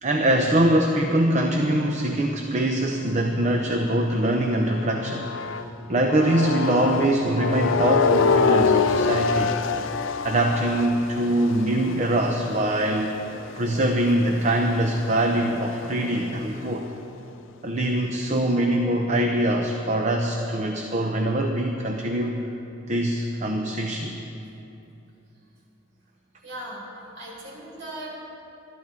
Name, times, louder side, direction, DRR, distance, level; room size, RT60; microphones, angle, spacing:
voice 1, 0.0-5.3 5.9-9.6 10.2-13.2 13.6-16.9 17.6-22.4 22.9-24.1, right 1 dB, 35° right, 3 dB, 0.7 m, -23 dB
sound 1, 2.8-5.7 6.1-16.5, left 5 dB, 80° left, 0.5 m, -27 dB
voice 2, 26.4-28.2, right 1 dB, 70° right, -4 dB, 4.1 m, -38 dB
21.0 x 13.0 x 3.8 m, 2.9 s
head